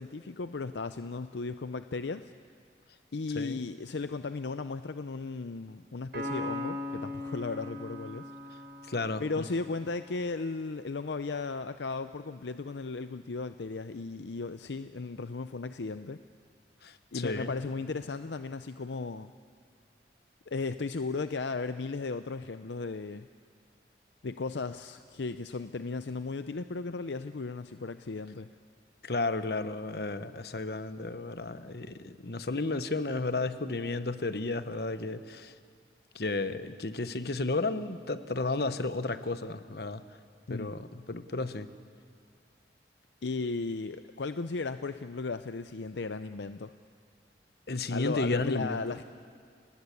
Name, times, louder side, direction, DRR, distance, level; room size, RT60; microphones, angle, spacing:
voice 1, 0.0-2.3 3.1-8.3 9.2-16.2 17.1-19.3 20.5-23.3 24.2-28.5 40.5-40.7 43.2-46.7 47.9-49.0, left 3 dB, 75° left, 11 dB, 0.6 m, -35 dB
Piano, 6.1-9.7, left 2 dB, 60° right, 5.4 m, -38 dB
voice 2, 8.9-9.4 16.8-17.5 29.0-35.5 36.1-40.0 40.5-41.7 47.7-48.8, left 3 dB, 60° left, 11 dB, 1.1 m, -33 dB
30.0 x 20.0 x 8.5 m, 2.2 s
head